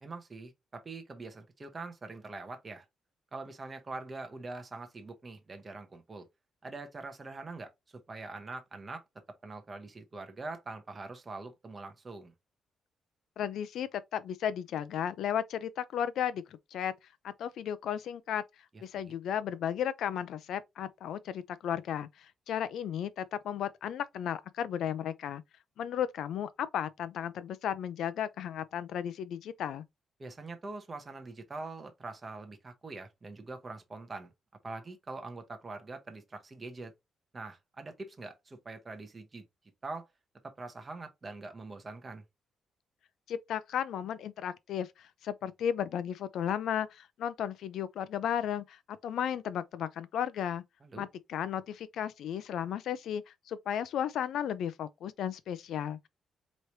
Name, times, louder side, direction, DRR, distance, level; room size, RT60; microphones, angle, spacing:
voice 1, 0.0-2.9 3.3-6.3 6.6-9.0 9.4-12.3 18.9-19.1 30.2-34.3 34.6-36.9 37.3-39.5 39.8-40.1 40.4-42.2 50.8-51.1, right 3 dB, 20° right, 0.9 m, -43 dB
voice 2, 13.4-16.4 16.7-16.9 17.2-18.4 18.8-25.4 25.8-29.8 43.3-50.6 50.9-56.1, left 9 dB, 70° left, 0.5 m, -34 dB
4.7 x 3.1 x 2.7 m
cardioid pair, 175°, 0 cm